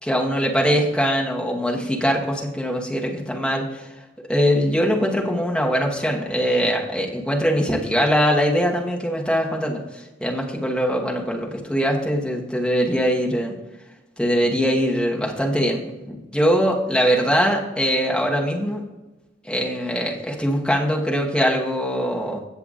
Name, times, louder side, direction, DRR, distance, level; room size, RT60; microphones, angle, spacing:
voice 1, 0.0-3.9 4.3-13.6 14.2-18.8 19.4-22.4, equal, 5° left, -1 dB, 1.2 m, -22 dB
16.5 x 5.8 x 2.5 m, 1.1 s
head